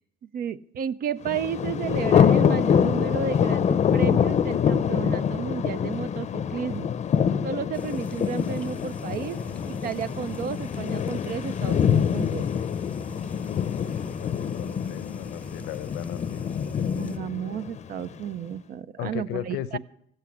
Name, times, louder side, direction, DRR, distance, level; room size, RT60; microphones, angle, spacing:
voice 1, 0.3-6.9 7.4-9.4 9.7-12.5 16.7-19.8, right 8 dB, 60° right, 15 dB, 0.7 m, -32 dB
Thunder, 1.3-18.2, left 8 dB, 40° left, 0.6 m, -25 dB
sound 1, 7.7-17.2, left 2 dB, 10° left, 0.7 m, -41 dB
voice 2, 13.3-16.4 19.0-19.8, left 12 dB, 85° left, 16 dB, 0.8 m, -36 dB
15.0 x 8.1 x 8.5 m, 0.70 s
cardioid pair, 110°, 17 cm